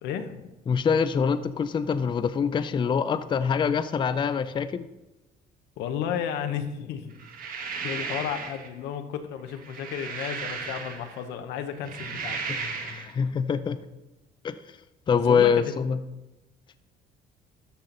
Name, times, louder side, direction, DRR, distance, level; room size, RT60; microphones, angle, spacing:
voice 1, 0.0-0.5 5.8-7.1 7.5-12.5 15.2-15.7, left 8 dB, 85° left, 8 dB, 1.0 m, -33 dB
voice 2, 0.7-4.8 12.5-13.8 14.4-14.6 15.1-16.0, left 6 dB, 30° left, 11 dB, 0.4 m, -25 dB
sound 1, 7.2-8.7 9.5-11.2 11.7-13.1, right 5 dB, 55° right, 1.4 m, -35 dB
13.0 x 5.8 x 3.9 m, 1.0 s
cardioid pair, 110°, 17 cm